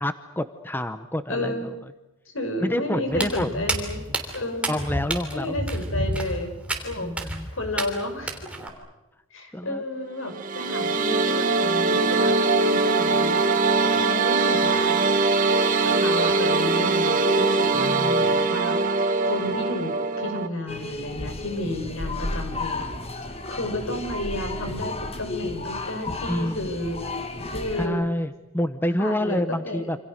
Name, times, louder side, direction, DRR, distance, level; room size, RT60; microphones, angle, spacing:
voice 1, 0.0-1.7 2.6-3.6 4.7-5.5 7.0-7.5 9.5-9.8 17.7-18.2 26.3-26.7 27.8-30.0, left 1 dB, 10° left, 10 dB, 0.8 m, -28 dB
voice 2, 1.3-1.7 2.3-4.0 4.3-4.7 5.3-6.5 6.8-8.4 9.3-15.0 15.8-22.9 23.5-27.0 27.5-28.1 29.0-30.0, left 1 dB, 75° left, 7 dB, 5.4 m, -32 dB
Walk footsteps, 3.1-8.7, right 1 dB, 5° right, 3.2 m, -31 dB
sound 1, 10.3-20.5, right 3 dB, 40° right, 1.9 m, -22 dB
sound 2, 20.7-27.9, left 2 dB, 30° left, 2.1 m, -33 dB
27.5 x 27.0 x 6.6 m, 1.0 s
head